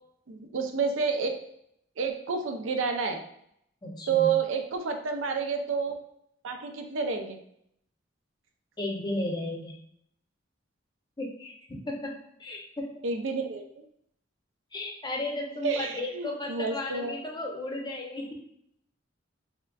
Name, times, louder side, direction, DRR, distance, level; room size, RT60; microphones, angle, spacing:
voice 1, 0.3-1.3 2.0-3.2 4.1-6.0 6.4-7.4 13.0-13.6 15.6-17.2, right 5 dB, 85° right, 5 dB, 0.5 m, -29 dB
voice 2, 3.8-4.3 8.8-9.8 11.2-12.1 12.4-12.9 14.7-18.3, left 2 dB, 20° left, 1 dB, 0.6 m, -34 dB
3.6 x 3.2 x 2.3 m, 0.73 s
head